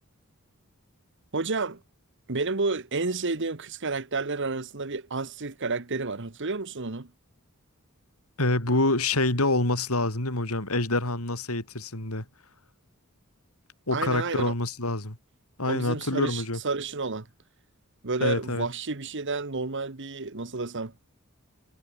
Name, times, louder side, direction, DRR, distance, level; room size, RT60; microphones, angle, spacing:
voice 1, 1.3-1.8 2.3-7.1 13.9-14.5 15.6-17.3 18.0-20.9, right 3 dB, 55° right, 1.4 m, -30 dB
voice 2, 8.4-12.2 13.9-15.2 15.6-16.6 18.2-18.7, left 2 dB, 80° left, 5.1 m, -26 dB
head